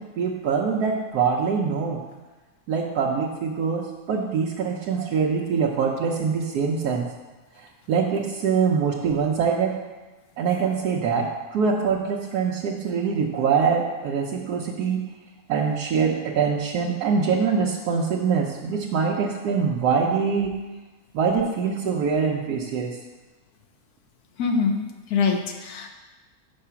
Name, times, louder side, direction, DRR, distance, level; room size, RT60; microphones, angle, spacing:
voice 1, 0.0-2.0 2.7-7.1 7.6-9.8 10.4-15.0 15.5-20.6 21.1-23.0, right 6 dB, 90° right, -2 dB, 1.2 m, -24 dB
voice 2, 24.4-24.8 25.1-25.9, left 5 dB, 90° left, 4 dB, 1.3 m, -23 dB
5.8 x 4.7 x 5.7 m, 1.2 s
omnidirectional pair, 1.6 m